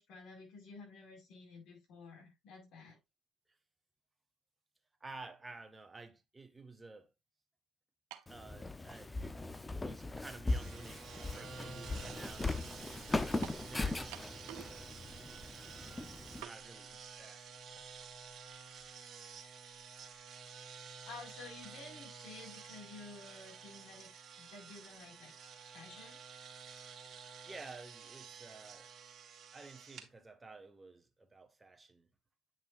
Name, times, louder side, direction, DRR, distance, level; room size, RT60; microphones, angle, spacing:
voice 1, 0.0-3.0 21.1-24.1 24.4-25.3 25.7-26.2, left 3 dB, 65° left, 5.1 m, -52 dB
voice 2, 5.0-7.1 8.3-9.2 9.8-12.8 13.1-15.1 16.3-17.5 27.5-28.9 29.5-32.1, right 3 dB, 20° right, 1.4 m, -52 dB
sound 1, 8.1-8.4 9.3-9.4 13.4-13.7 14.1-14.8 15.0-15.1 16.4-16.6, right 14 dB, 85° right, 0.9 m, -48 dB
Walk footsteps, 8.3-16.4, left 2 dB, 15° left, 0.7 m, -39 dB
sound 2, 10.5-30.1, right 5 dB, 50° right, 2.1 m, -51 dB
9.2 x 6.0 x 2.5 m
supercardioid pair, 80°, 0 cm